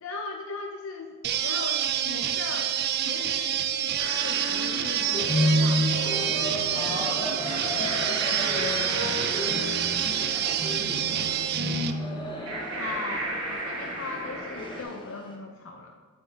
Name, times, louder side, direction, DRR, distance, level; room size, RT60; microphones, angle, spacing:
voice 1, 0.0-1.1 1.4-2.8 3.0-6.5 12.7-16.0, left 3 dB, 65° left, 3 dB, 0.5 m, -39 dB
sound 1, 1.2-11.9, right 9 dB, 45° right, 0.4 m, -27 dB
sound 2, 4.0-14.8, right 2 dB, 65° right, 1.7 m, -37 dB
sound 3, 5.1-15.3, left 1 dB, 20° left, 0.8 m, -31 dB
voice 2, 6.7-12.0, equal, 25° right, -9 dB, 2.0 m, -40 dB
8.5 x 7.7 x 2.8 m, 1.4 s
head